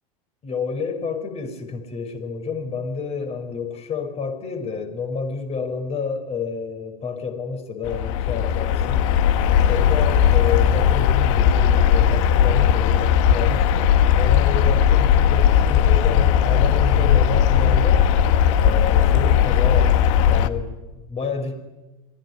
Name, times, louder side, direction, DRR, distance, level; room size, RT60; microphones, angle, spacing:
voice 1, 0.4-9.1 9.7-18.1 18.6-21.6, left 5 dB, 35° left, 7 dB, 5.5 m, -29 dB
sound 1, 7.8-20.5, left 9 dB, 60° left, 1.6 m, -17 dB
26.0 x 20.0 x 9.8 m, 1.1 s
hypercardioid pair, 85°, 19 cm